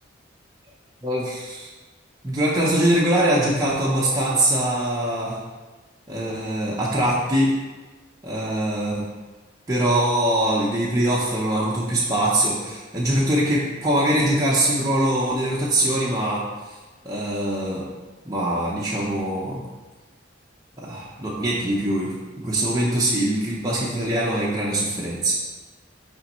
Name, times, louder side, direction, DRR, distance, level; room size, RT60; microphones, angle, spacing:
voice 1, 1.0-1.7 2.2-5.4 6.1-7.5 8.2-9.0 9.7-16.4 17.0-17.8 18.3-19.6 20.8-25.3, right 1 dB, 20° right, -6 dB, 0.8 m, -22 dB
9.5 x 3.4 x 3.0 m, 1.2 s
head